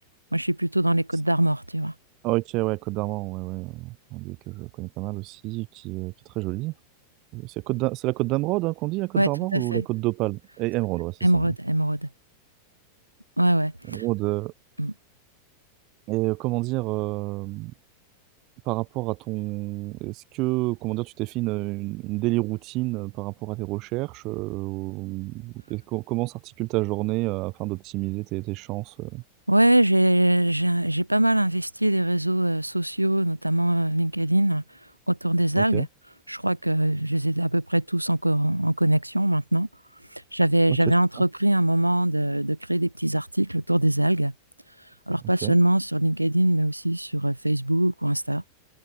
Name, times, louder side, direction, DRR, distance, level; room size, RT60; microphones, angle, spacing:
voice 1, 0.3-1.9 9.2-9.9 11.2-12.1 13.4-14.0 14.8-14.9 29.5-34.6 35.1-35.9 36.3-39.7 40.1-44.3 45.1-48.4, right 1 dB, 85° right, 7.0 m, -23 dB
voice 2, 2.2-6.7 7.3-11.5 13.9-14.5 16.1-17.7 18.6-29.2 35.6-35.9 40.7-41.2 45.4-45.6, right 22 dB, 40° right, 4.0 m, -29 dB
open air
figure-of-eight pair, 90°, 0 cm